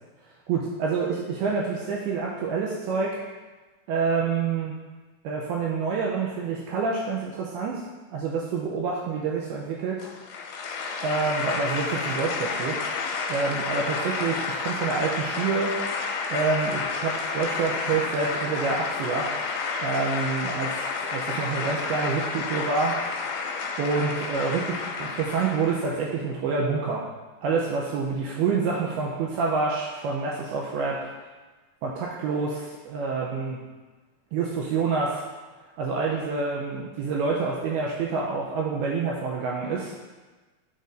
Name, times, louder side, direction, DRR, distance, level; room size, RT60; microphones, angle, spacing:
voice 1, 0.5-3.2 3.9-4.8 5.2-7.8 8.1-10.0 11.0-12.8 13.3-15.7 16.3-19.3 19.8-20.8 21.1-23.0 23.8-27.0 27.4-31.1 31.8-33.6 34.3-35.2 35.8-39.9, right 4 dB, 85° right, -3 dB, 2.3 m, -27 dB
sound 1, 10.0-26.0, left 4 dB, 85° left, 2.8 m, -30 dB
12.0 x 4.0 x 2.5 m, 1.3 s
omnidirectional pair, 5.1 m